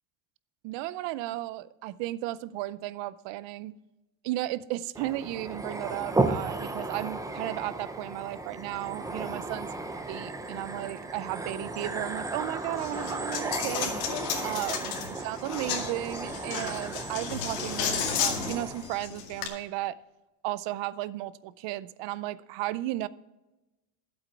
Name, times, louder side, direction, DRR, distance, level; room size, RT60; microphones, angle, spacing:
voice 1, 0.6-3.8 4.2-9.7 10.1-13.9 14.4-14.9 15.2-20.0 20.4-23.1, right 15 dB, 60° right, 0.6 m, -34 dB
sound 1, 4.9-18.9, right 2 dB, 5° right, 0.5 m, -35 dB
Coin (dropping), 12.8-19.5, left 8 dB, 85° left, 2.3 m, -33 dB
12.0 x 8.1 x 4.6 m
cardioid pair, 140°, 49 cm